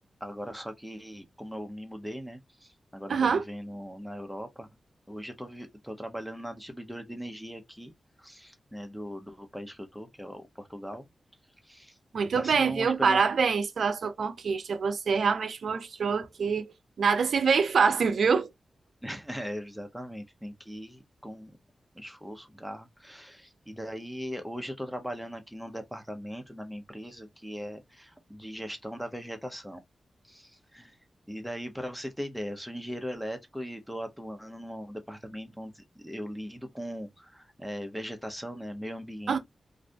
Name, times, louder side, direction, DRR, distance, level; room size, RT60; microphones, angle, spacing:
voice 1, 0.2-4.7 5.1-7.9 8.2-11.0 11.6-13.3 19.0-21.5 21.9-29.8 30.2-31.0 31.3-39.4, equal, ahead, 0.8 m, -39 dB
voice 2, 3.1-3.4 12.1-16.7 17.0-18.5 39.3-39.4, right 5 dB, 80° right, 0.5 m, -25 dB
2.6 x 2.5 x 3.3 m
wide cardioid pair, 90°, 0 cm